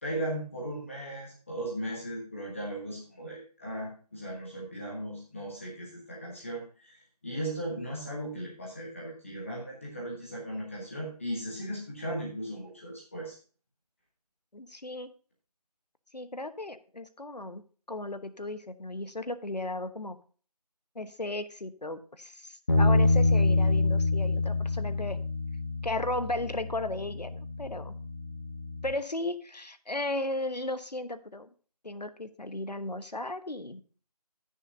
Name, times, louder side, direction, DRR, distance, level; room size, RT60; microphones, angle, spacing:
voice 1, 0.0-13.4, right 1 dB, 20° left, -4 dB, 1.4 m, -37 dB
voice 2, 14.5-15.1 16.1-17.6 17.9-20.2 20.9-25.2 25.8-27.9 28.8-31.5 31.8-33.8, left 2 dB, 80° left, 11 dB, 1.1 m, -35 dB
Bass guitar, 22.7-28.9, left 2 dB, 35° left, 1.1 m, -27 dB
17.0 x 6.6 x 2.7 m, 0.40 s
figure-of-eight pair, 165°, 21 cm